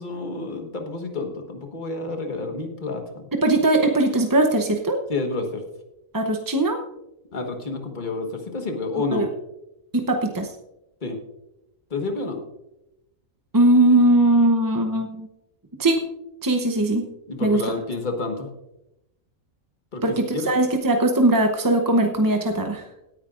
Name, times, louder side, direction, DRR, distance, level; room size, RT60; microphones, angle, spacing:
voice 1, 0.0-3.3 5.1-5.6 7.3-9.3 11.0-11.2 11.9-12.4 17.3-18.5 19.9-20.0 20.3-20.5, left 3 dB, 35° left, 4 dB, 1.6 m, -29 dB
voice 2, 3.4-5.0 6.1-6.8 9.1-9.3 9.9-10.5 13.5-15.3 15.8-16.0 16.4-17.1 17.4-17.7 20.0-22.9, right 1 dB, 20° right, 3 dB, 0.6 m, -20 dB
17.5 x 9.8 x 2.5 m, 0.89 s
omnidirectional pair, 1.4 m